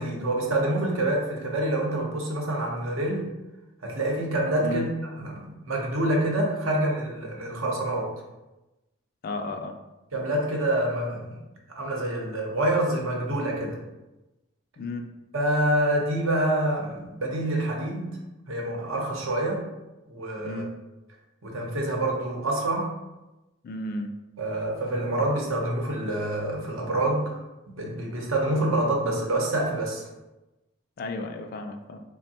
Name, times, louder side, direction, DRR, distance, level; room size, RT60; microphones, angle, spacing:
voice 1, 0.0-3.2 3.8-4.9 5.2-8.1 10.1-11.4 11.7-13.8 15.3-18.2 18.5-19.6 20.1-20.6 21.4-22.9 24.4-27.4 27.7-30.1, right 1 dB, 75° right, -1 dB, 0.8 m, -27 dB
voice 2, 9.2-9.8 14.8-15.0 20.4-20.7 23.6-24.1 31.0-32.0, left 2 dB, 45° left, 5 dB, 0.3 m, -33 dB
3.5 x 2.1 x 4.1 m, 1.0 s
head